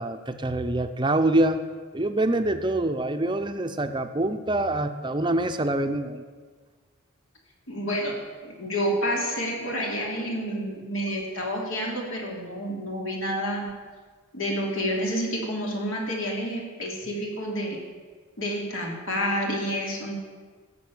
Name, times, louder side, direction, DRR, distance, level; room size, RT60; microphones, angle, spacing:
voice 1, 0.0-1.6 1.9-6.2, right 1 dB, 20° right, 8 dB, 0.7 m, -25 dB
voice 2, 7.7-8.1 8.4-13.7 14.3-17.8 18.4-20.2, equal, 70° left, -1 dB, 3.0 m, -29 dB
13.0 x 7.0 x 8.6 m, 1.5 s
head